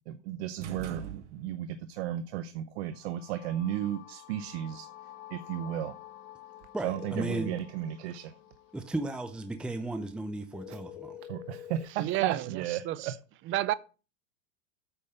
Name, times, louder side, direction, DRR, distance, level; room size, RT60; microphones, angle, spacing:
voice 1, 0.1-4.9 5.3-5.9 6.8-8.3 10.7-10.8 11.3-13.1, right 11 dB, 65° right, 0.9 m, -34 dB
sound 1, 0.6-1.8, right 9 dB, 90° right, 1.2 m, -41 dB
sound 2, 2.8-10.7, left 13 dB, 50° left, 2.2 m, -51 dB
voice 2, 6.7-7.6 8.7-11.2, right 2 dB, 5° right, 0.7 m, -35 dB
sound 3, 6.8-7.7 10.5-11.9, left 11 dB, 80° left, 2.1 m, -45 dB
voice 3, 12.0-13.1 13.5-13.7, right 15 dB, 35° right, 0.7 m, -31 dB
8.7 x 5.3 x 6.7 m
hypercardioid pair, 115°, 34 cm